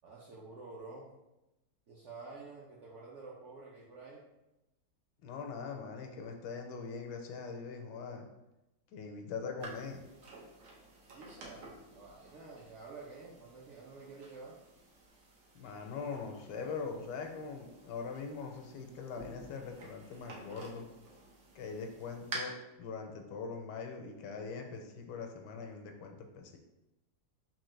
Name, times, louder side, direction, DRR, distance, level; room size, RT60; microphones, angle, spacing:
voice 1, 0.0-1.1 1.9-4.2 11.1-11.7 11.9-14.6, right 3 dB, 70° right, -4 dB, 0.7 m, -49 dB
voice 2, 5.2-8.3 8.9-10.1 15.5-20.9 21.5-22.5 22.8-26.6, left 5 dB, 85° left, 4 dB, 1.2 m, -42 dB
sound 1, 9.6-22.4, right 3 dB, 85° right, 1.4 m, -51 dB
3.7 x 2.7 x 3.1 m, 0.96 s
omnidirectional pair, 1.8 m